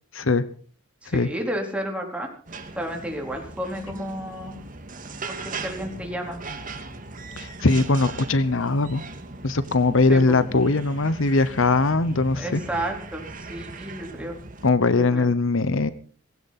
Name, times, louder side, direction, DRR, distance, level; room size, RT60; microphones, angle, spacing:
voice 1, 0.1-0.4 1.1-1.3 7.4-9.0 9.4-12.6 14.6-15.9, left 3 dB, 65° left, 15 dB, 0.9 m, -21 dB
voice 2, 1.0-2.3 2.8-4.6 5.3-6.4 10.1-10.4 12.4-14.4 14.9-15.3, right 1 dB, 5° right, 1 dB, 4.0 m, -32 dB
sound 1, 2.5-14.7, right 3 dB, 40° right, 2.1 m, -38 dB
19.5 x 16.0 x 4.2 m, 0.42 s
head